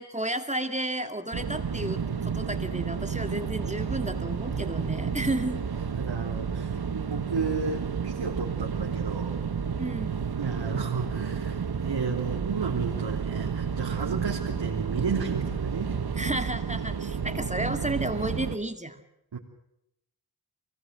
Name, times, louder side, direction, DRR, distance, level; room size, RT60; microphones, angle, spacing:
voice 1, 0.0-5.6 9.8-10.2 16.2-19.0, right 1 dB, 15° right, 8 dB, 2.1 m, -32 dB
sound 1, 1.3-18.6, right 6 dB, 60° right, 1.6 m, -31 dB
voice 2, 5.9-9.4 10.4-16.0 17.2-17.3 19.3-19.4, right 5 dB, 80° right, -3 dB, 3.3 m, -33 dB
24.0 x 19.5 x 7.7 m, 0.82 s
cardioid pair, 40°, 42 cm